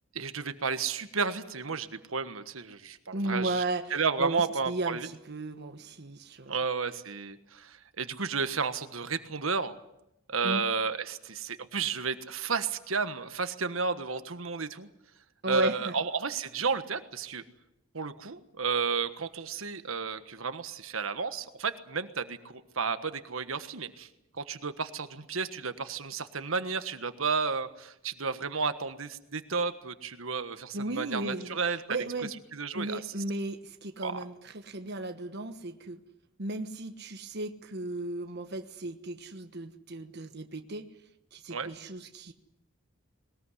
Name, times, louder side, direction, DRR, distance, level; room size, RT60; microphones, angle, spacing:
voice 1, 0.1-3.6 3.9-5.1 6.5-9.8 10.3-14.9 15.5-17.4 17.9-24.1 24.4-31.8 32.5-33.0 34.0-34.2 41.5-41.7, right 5 dB, 75° right, 10 dB, 1.4 m, -32 dB
voice 2, 3.1-6.5 10.4-10.7 15.4-15.9 30.7-31.6 31.9-32.3 32.7-36.0 36.4-40.9 41.3-42.3, right 2 dB, 55° right, 7 dB, 1.3 m, -35 dB
21.0 x 20.0 x 9.8 m, 0.83 s
head